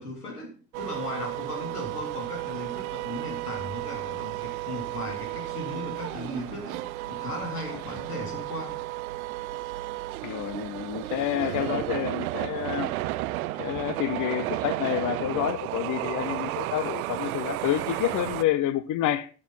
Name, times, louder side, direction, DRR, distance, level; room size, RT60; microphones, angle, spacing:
voice 1, 0.0-8.8, left 1 dB, 80° left, 3.4 m, -37 dB
sound 1, 0.7-18.4, right 17 dB, 70° right, 0.7 m, -33 dB
voice 2, 10.2-12.9 13.6-19.3, left 12 dB, 45° left, 0.7 m, -28 dB
12.5 x 7.6 x 5.8 m
figure-of-eight pair, 55°, 45 cm